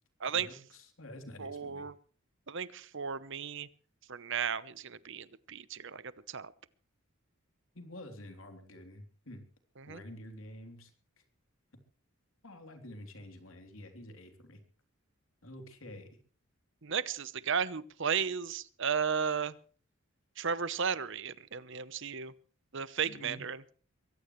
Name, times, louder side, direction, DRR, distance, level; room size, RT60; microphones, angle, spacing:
voice 1, 0.2-1.9 7.7-9.4 9.9-11.2 12.4-14.6 15.4-16.1 23.0-23.4, left 1 dB, 70° left, 6 dB, 3.4 m, -49 dB
voice 2, 1.4-1.9 2.5-3.7 4.1-6.5 9.8-10.0 16.8-19.5 20.4-22.3 22.7-23.6, right 6 dB, 60° right, 17 dB, 0.9 m, -34 dB
23.0 x 16.0 x 3.2 m, 0.40 s
head